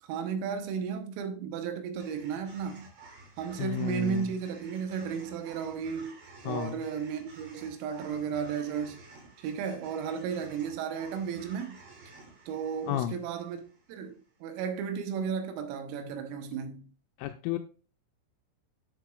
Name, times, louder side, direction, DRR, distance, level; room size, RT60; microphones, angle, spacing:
voice 1, 0.0-2.9 3.4-6.2 6.4-9.0 9.4-11.8 12.5-16.9, right 7 dB, 90° right, 3.7 m, -34 dB
sound 1, 2.0-14.3, right 3 dB, 60° right, 5.0 m, -53 dB
voice 2, 3.6-4.3 6.5-6.8 12.9-13.2 17.2-17.6, left 11 dB, 85° left, 3.1 m, -32 dB
10.0 x 7.8 x 2.3 m
omnidirectional pair, 5.9 m